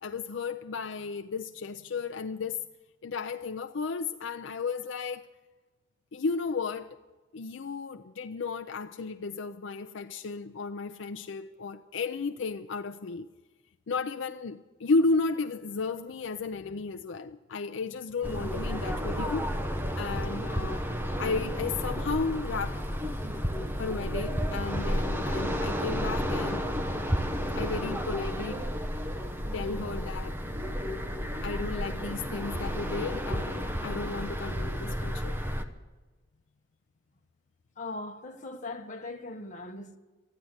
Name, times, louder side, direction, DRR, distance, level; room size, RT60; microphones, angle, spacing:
voice 1, 0.0-2.6 3.0-5.3 6.1-7.0 7.3-13.3 13.9-19.4 20.0-20.8 21.1-22.8 23.8-26.7 27.5-28.6 29.5-30.4 31.4-35.4, left 4 dB, 75° left, 0.5 m, -33 dB
sound 1, 18.2-35.6, equal, 10° right, 0.9 m, -32 dB
voice 2, 37.8-40.0, left 2 dB, 40° left, 1.3 m, -39 dB
13.5 x 10.5 x 9.6 m
head